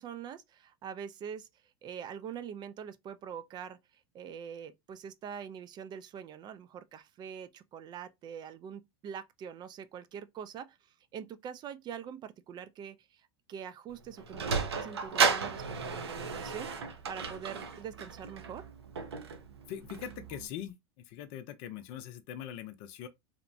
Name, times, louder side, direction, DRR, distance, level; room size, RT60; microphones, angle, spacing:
voice 1, 0.0-1.5 1.8-3.8 4.1-10.8 11.1-13.2 13.5-18.7, right 8 dB, 35° right, 0.3 m, -44 dB
Sliding door, 13.9-20.5, right 5 dB, 85° right, 0.5 m, -34 dB
voice 2, 19.7-23.1, left 10 dB, 55° left, 0.5 m, -42 dB
2.8 x 2.1 x 2.5 m
hypercardioid pair, 85°, 13 cm